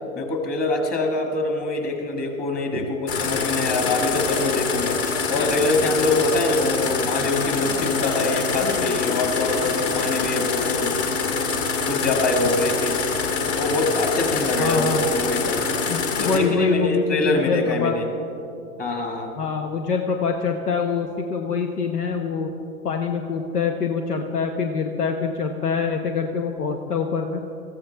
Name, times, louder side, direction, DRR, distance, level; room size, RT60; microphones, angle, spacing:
voice 1, 0.1-11.0 11.9-13.0 13.6-15.6 16.1-18.1 18.8-19.3, left 2 dB, 20° left, 2 dB, 1.9 m, -24 dB
sound 1, 3.1-16.4, left 5 dB, 45° left, 2.0 m, -25 dB
voice 2, 14.6-15.1 15.9-17.9 19.4-22.5 22.8-27.4, left 5 dB, 85° left, 5 dB, 1.1 m, -25 dB
20.0 x 14.5 x 3.4 m, 2.7 s
hypercardioid pair, 125°, 45 cm